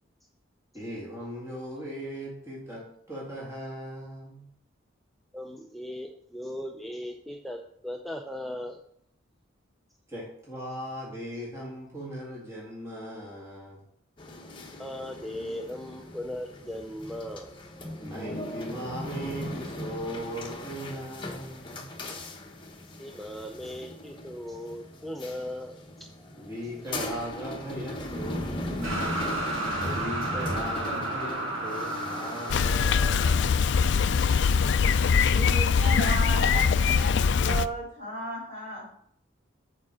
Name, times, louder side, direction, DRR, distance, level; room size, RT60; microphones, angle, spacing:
voice 1, 0.7-4.5 10.1-13.8 18.0-21.8 26.4-29.1 29.9-33.7, equal, 15° right, -5 dB, 1.9 m, -38 dB
voice 2, 5.3-8.8 14.8-17.5 23.0-26.3 27.0-27.1, left 1 dB, ahead, 1 dB, 0.4 m, -38 dB
sound 1, 14.2-32.6, left 1 dB, 25° left, 0.9 m, -38 dB
sound 2, 28.8-34.9, right 1 dB, 90° right, 1.8 m, -33 dB
Bicycle, 32.5-37.6, left 6 dB, 65° left, 0.4 m, -22 dB
voice 3, 35.3-38.9, right 1 dB, 35° right, -6 dB, 3.7 m, -34 dB
7.4 x 4.9 x 6.1 m, 0.68 s
head